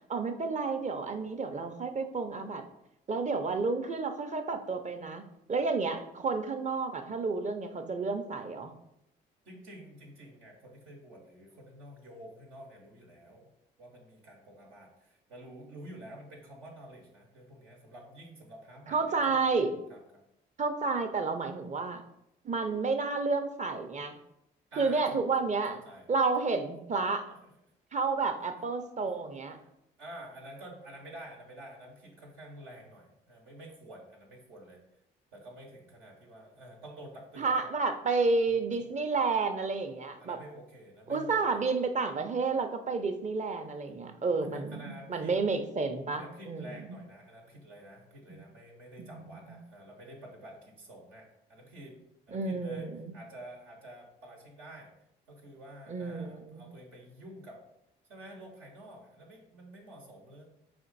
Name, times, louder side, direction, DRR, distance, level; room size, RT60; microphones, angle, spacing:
voice 1, 0.1-2.6 3.1-5.2 5.5-8.7 18.9-19.7 20.6-22.0 22.4-24.2 24.8-25.8 26.1-27.3 27.9-29.6 37.4-40.4 41.1-46.7 48.3-48.4 49.0-49.5 52.3-53.1 55.9-56.6, right 4 dB, 35° right, 7 dB, 0.6 m, -31 dB
voice 2, 9.4-13.5 13.8-19.5 19.9-20.2 24.7-26.1 26.4-26.5 27.3-27.5 29.0-29.1 29.6-29.7 30.0-34.8 35.3-37.7 38.4-38.9 40.2-41.6 44.4-45.4 46.1-52.0 52.3-54.9 55.3-57.6 58.1-60.4, right 1 dB, 85° right, -1 dB, 1.0 m, -49 dB
4.3 x 2.5 x 4.0 m, 0.81 s
supercardioid pair, 55°, 21 cm